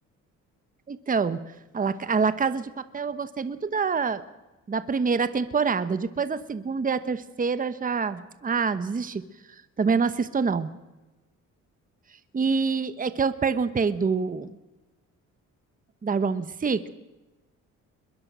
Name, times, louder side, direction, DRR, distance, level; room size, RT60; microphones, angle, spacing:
voice 1, 0.9-1.4 1.7-4.2 4.7-9.2 9.8-10.7 12.3-14.5 16.0-16.9, right 5 dB, 25° right, 13 dB, 1.1 m, -26 dB
22.0 x 21.5 x 6.2 m, 1.1 s
cardioid pair, 90°, 30 cm